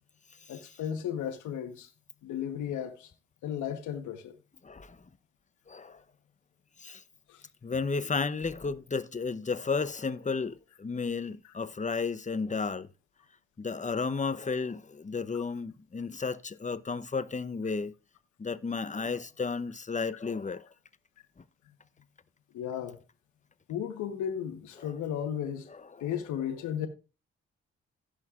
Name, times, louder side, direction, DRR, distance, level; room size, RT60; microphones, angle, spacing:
voice 1, 0.5-1.9 2.2-3.1 3.4-4.4 7.3-7.4 22.5-23.0 23.7-25.7 26.0-26.9, left 9 dB, 80° left, 1.2 m, -34 dB
voice 2, 4.6-5.0 5.7-6.0 6.8-7.0 7.6-12.9 13.6-17.9 18.4-20.7 24.8-24.9 25.7-26.1, left 4 dB, 25° left, 0.8 m, -33 dB
16.5 x 6.4 x 2.5 m
supercardioid pair, 45°, 30 cm